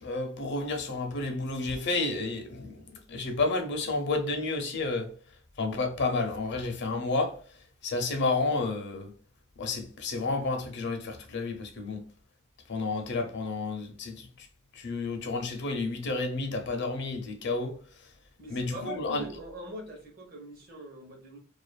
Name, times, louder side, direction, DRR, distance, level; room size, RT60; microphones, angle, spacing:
voice 1, 0.0-5.1 5.6-7.4 7.8-9.1 9.6-12.0 12.7-14.5 14.7-18.1 18.5-19.2, left 3 dB, 60° left, 0.6 m, -31 dB
voice 2, 18.4-21.4, equal, 45° right, 0.8 m, -43 dB
2.6 x 2.4 x 2.3 m
head